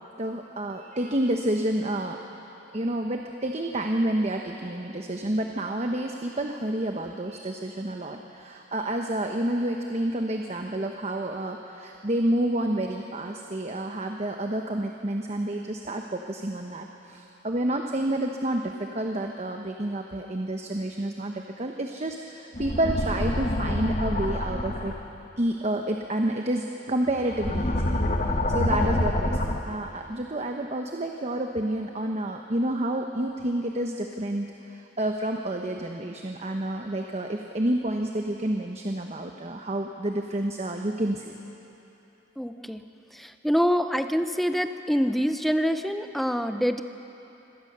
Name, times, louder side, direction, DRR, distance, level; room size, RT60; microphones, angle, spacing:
voice 1, 0.2-2.2 2.7-24.9 25.4-41.3, right 1 dB, 35° right, 3 dB, 1.0 m, -29 dB
sound 1, 22.5-25.0 27.1-29.6, left 1 dB, 45° left, 1.2 m, -26 dB
voice 2, 42.4-42.8 43.1-46.8, equal, ahead, 8 dB, 0.7 m, -25 dB
25.5 x 18.0 x 6.7 m, 3.0 s
head